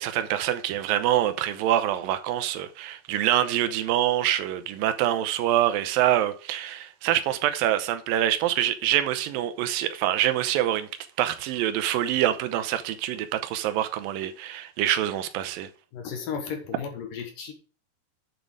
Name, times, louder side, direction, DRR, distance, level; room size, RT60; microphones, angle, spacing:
voice 1, 0.0-10.9 11.2-15.7, right 12 dB, 80° right, 2.0 m, -25 dB
voice 2, 15.9-17.5, left 6 dB, 65° left, 2.4 m, -34 dB
9.0 x 6.7 x 4.8 m
omnidirectional pair, 5.0 m